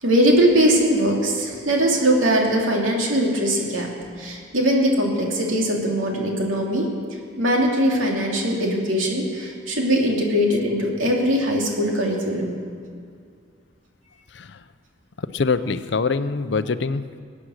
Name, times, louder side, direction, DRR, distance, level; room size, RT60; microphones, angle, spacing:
voice 1, 0.0-3.9 4.2-6.9 7.4-12.5, equal, 80° right, -1 dB, 2.8 m, -21 dB
voice 2, 14.3-14.6 15.2-17.0, left 4 dB, 60° left, 13 dB, 0.5 m, -24 dB
21.5 x 8.7 x 6.4 m, 2.1 s
head